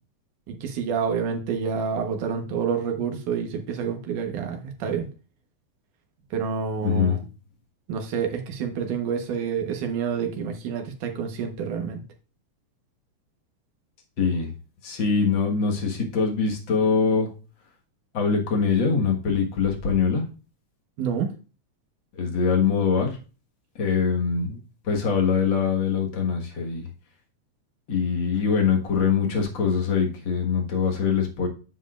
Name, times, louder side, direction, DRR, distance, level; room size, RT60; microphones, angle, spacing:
voice 1, 0.5-5.1 6.3-7.2 7.9-12.0 21.0-21.3, right 6 dB, 85° right, 4 dB, 2.7 m, -28 dB
voice 2, 6.8-7.2 14.2-14.5 14.8-17.3 18.1-20.2 22.2-23.2 23.8-24.6 24.8-26.9 27.9-31.5, left 6 dB, 45° left, 2 dB, 1.9 m, -23 dB
9.5 x 7.1 x 2.4 m, 0.34 s
omnidirectional pair, 3.5 m